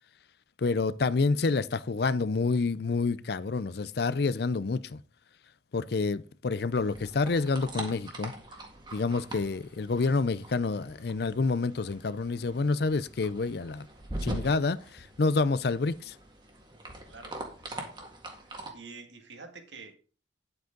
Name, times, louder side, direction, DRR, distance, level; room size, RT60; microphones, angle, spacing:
voice 1, 0.6-5.0 5.7-8.3 8.9-13.9 14.2-16.2, left 3 dB, 60° left, 0.5 m, -28 dB
sound 1, 6.7-18.7, right 1 dB, 25° right, 1.8 m, -42 dB
voice 2, 17.1-20.0, right 4 dB, 75° right, 2.1 m, -49 dB
10.5 x 7.8 x 3.8 m
head